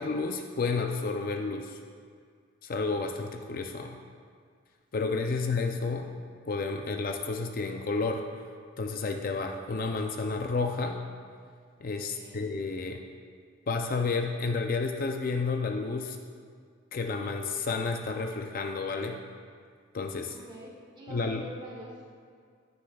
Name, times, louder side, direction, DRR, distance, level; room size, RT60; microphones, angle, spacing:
voice 1, 0.0-1.8 2.6-4.0 4.9-6.1 6.5-8.2 8.8-11.0 11.8-13.0 13.7-16.2 16.9-19.2 19.9-20.3 21.1-21.4, left 4 dB, 40° left, 4 dB, 0.4 m, -31 dB
voice 2, 5.0-5.4 5.8-5.9 12.0-12.4 20.3-22.0, right 1 dB, 20° right, -5 dB, 1.7 m, -46 dB
15.5 x 6.8 x 2.3 m, 2.1 s
head